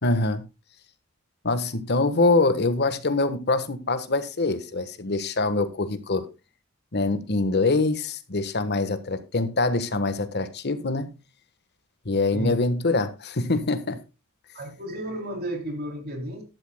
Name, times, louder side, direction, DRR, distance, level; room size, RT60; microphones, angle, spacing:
voice 1, 0.0-0.4 1.4-6.3 6.9-11.1 12.0-14.0, left 3 dB, 50° left, 1.3 m, -24 dB
voice 2, 14.5-16.4, right 1 dB, 45° right, 3.3 m, -32 dB
14.0 x 12.0 x 2.2 m
head